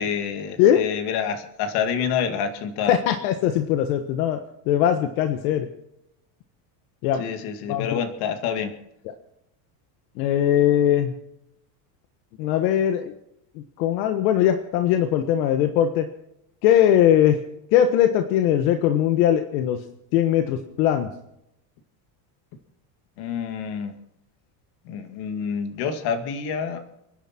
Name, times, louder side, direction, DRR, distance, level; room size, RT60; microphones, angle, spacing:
voice 1, 0.0-3.0 7.2-8.8 23.2-24.0 24.8-26.8, left 7 dB, 55° left, 8 dB, 2.2 m, -27 dB
voice 2, 2.9-5.7 7.0-7.2 7.7-7.9 10.2-11.1 12.4-13.1 13.5-16.1 16.6-17.4 17.7-19.8 20.1-21.1, left 10 dB, 75° left, 7 dB, 1.5 m, -20 dB
30.0 x 10.0 x 4.4 m, 0.82 s
cardioid pair, 170°, 46 cm